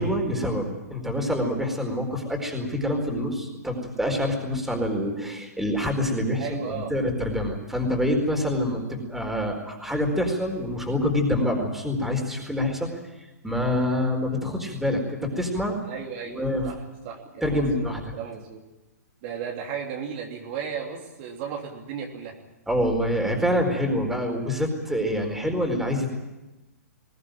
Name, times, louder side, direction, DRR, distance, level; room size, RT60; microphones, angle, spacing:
voice 1, 0.0-12.9 13.4-15.8 16.3-16.7 17.4-18.1 22.7-26.1, left 1 dB, 5° right, 3 dB, 4.5 m, -26 dB
voice 2, 6.4-6.9 15.8-16.8 17.0-18.6 19.2-22.4, right 7 dB, 45° right, 1 dB, 3.2 m, -35 dB
21.5 x 17.0 x 9.1 m, 1.0 s
hypercardioid pair, 125°, 9 cm